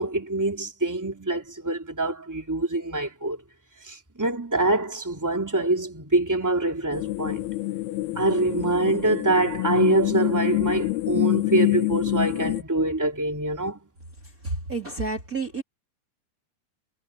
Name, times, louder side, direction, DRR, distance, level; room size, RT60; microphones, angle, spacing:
voice 1, 0.0-3.4 3.9-7.4 8.2-13.8, right 2 dB, 5° right, 2.3 m, -25 dB
sound 1, 6.9-12.6, left 20 dB, 75° left, 3.0 m, -26 dB
voice 2, 14.4-15.6, right 3 dB, 25° right, 3.0 m, -30 dB
omnidirectional pair, 4.7 m